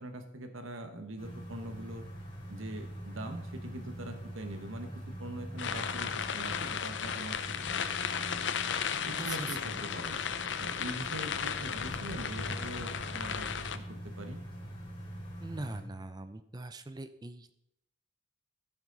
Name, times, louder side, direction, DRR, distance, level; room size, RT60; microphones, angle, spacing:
voice 1, 0.0-2.1 2.5-7.4 7.7-7.8 8.2-8.5 9.0-10.2 10.6-14.4, right 1 dB, 80° right, 6 dB, 1.3 m, -43 dB
sound 1, 1.2-15.8, right 1 dB, 25° left, 3.0 m, -44 dB
sound 2, 5.6-13.8, left 7 dB, 60° left, 0.6 m, -35 dB
voice 2, 9.2-9.8 15.4-17.5, right 2 dB, 20° right, 10 dB, 0.5 m, -42 dB
14.0 x 6.1 x 4.0 m, 0.80 s
head